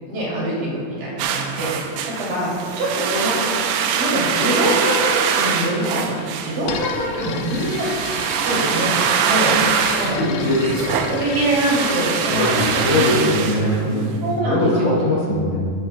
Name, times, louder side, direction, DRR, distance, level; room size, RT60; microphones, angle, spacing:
voice 1, 0.1-2.5 2.8-3.3 4.0-7.9 8.4-8.9 9.2-9.5 10.0-10.2 11.1-13.2 14.2-15.0, right 1 dB, 55° right, -6 dB, 4.1 m, -24 dB
Dragging a body across a concrete floor, 1.2-14.2, right 7 dB, 80° right, 2.6 m, -23 dB
sound 1, 6.6-13.3, left 7 dB, 85° left, 2.1 m, -33 dB
voice 2, 10.2-10.9 12.3-14.0 14.4-15.6, left 1 dB, 55° left, -5 dB, 3.0 m, -21 dB
14.5 x 12.5 x 2.2 m, 2.3 s
omnidirectional pair, 4.8 m